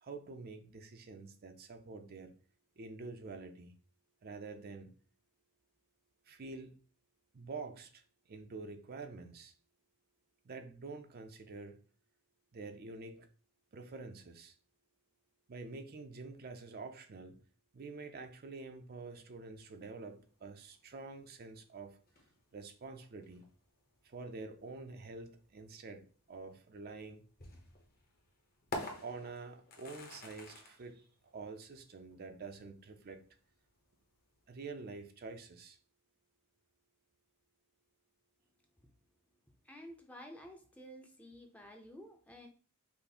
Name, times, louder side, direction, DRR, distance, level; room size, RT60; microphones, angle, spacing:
voice 1, 0.0-2.3 2.8-3.7 4.2-4.9 6.3-6.8 7.3-8.0 8.3-9.5 10.4-11.8 12.5-13.3 13.7-14.5 15.5-17.4 17.7-22.0 22.5-23.5 24.0-27.2 29.0-31.0 31.3-33.3 34.5-35.8, right 3 dB, 45° right, 0.5 m, -47 dB
sound 1, 19.6-34.8, left 2 dB, 40° left, 1.0 m, -51 dB
voice 2, 39.6-42.5, equal, 5° left, 0.6 m, -52 dB
5.5 x 2.1 x 4.2 m
head